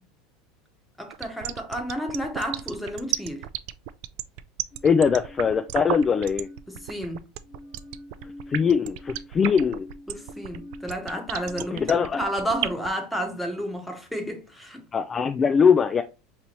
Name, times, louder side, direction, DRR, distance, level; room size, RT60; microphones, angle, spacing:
voice 1, 1.0-3.5 6.7-7.2 10.1-14.8, equal, ahead, 1.0 m, -31 dB
sound 1, 1.1-12.9, right 14 dB, 60° right, 0.3 m, -32 dB
sound 2, 4.7-7.0 7.4-12.1, left 1 dB, 55° left, 1.4 m, -47 dB
voice 2, 4.8-6.5 8.5-9.9 11.7-12.2 14.9-16.0, left 6 dB, 20° left, 0.3 m, -21 dB
5.4 x 2.9 x 3.0 m
supercardioid pair, 145°, 0 cm